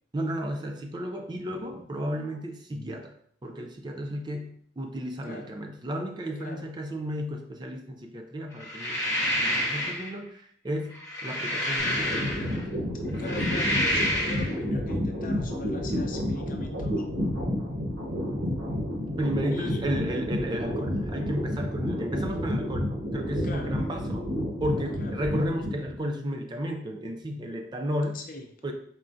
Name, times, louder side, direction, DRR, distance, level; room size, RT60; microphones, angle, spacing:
voice 1, 0.1-12.6 13.1-13.4 19.0-24.2 24.6-28.2 28.6-28.7, equal, 25° right, 3 dB, 0.4 m, -33 dB
sound 1, 8.6-10.1 10.9-12.6 13.1-14.5, left 1 dB, 15° left, 0.8 m, -28 dB
sound 2, 11.8-26.0, equal, 80° right, 1.0 m, -30 dB
voice 2, 12.9-17.1 19.5-19.8 23.4-23.7 25.0-25.2 28.1-28.4, left 2 dB, 45° left, 4 dB, 0.6 m, -41 dB
4.2 x 3.6 x 2.5 m, 0.62 s
head